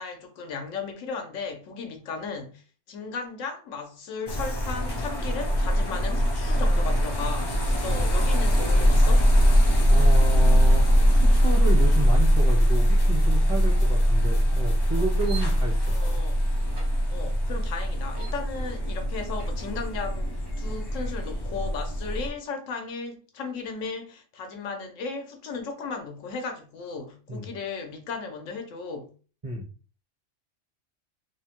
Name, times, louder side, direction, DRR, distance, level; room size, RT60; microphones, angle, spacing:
voice 1, 0.0-9.3 15.9-16.4 17.1-20.3 20.6-29.1, left 4 dB, 90° left, 1.1 m, -36 dB
sound 1, 4.3-22.3, equal, 40° left, 0.3 m, -22 dB
sound 2, 6.4-16.4, left 3 dB, 55° left, 0.8 m, -47 dB
voice 2, 9.9-16.0 27.3-27.5 29.4-29.7, right 2 dB, 35° right, 0.6 m, -31 dB
sound 3, 15.0-20.6, right 1 dB, 75° right, 1.4 m, -43 dB
3.3 x 2.1 x 2.8 m
omnidirectional pair, 1.3 m